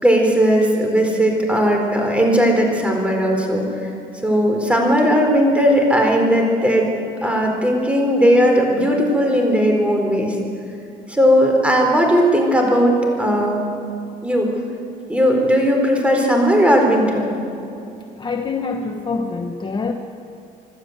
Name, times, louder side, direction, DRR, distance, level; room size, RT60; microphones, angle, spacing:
voice 1, 0.0-3.6 4.2-6.9 7.2-10.4 11.1-13.6 14.2-14.5 15.1-17.3, equal, 5° right, 1 dB, 4.3 m, -17 dB
voice 2, 18.2-19.9, left 4 dB, 30° left, 4 dB, 1.1 m, -25 dB
26.5 x 12.0 x 8.1 m, 2.7 s
cardioid pair, 110°, 17 cm